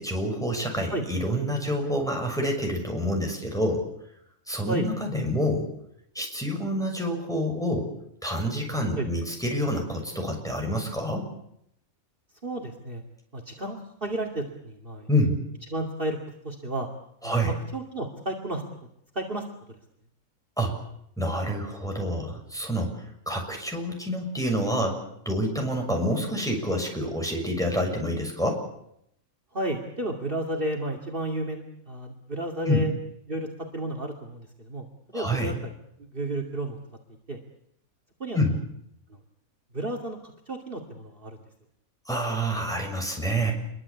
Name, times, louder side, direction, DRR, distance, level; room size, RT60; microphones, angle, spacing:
voice 1, 0.0-3.8 4.5-5.7 6.1-7.9 8.2-11.2 15.1-15.4 17.2-17.5 20.6-20.8 21.2-25.0 25.2-28.6 32.6-32.8 35.1-35.5 38.3-38.5 42.1-43.5, equal, ahead, 1 dB, 6.5 m, -27 dB
voice 2, 12.4-13.0 13.3-15.1 15.7-16.2 16.4-16.9 17.2-18.6 19.1-19.8 29.5-32.9 33.3-35.7 36.1-36.8 37.3-37.4 38.2-38.4 39.7-41.4, right 1 dB, 40° right, 4 dB, 2.7 m, -32 dB
27.0 x 23.0 x 8.5 m, 0.76 s
omnidirectional pair, 1.5 m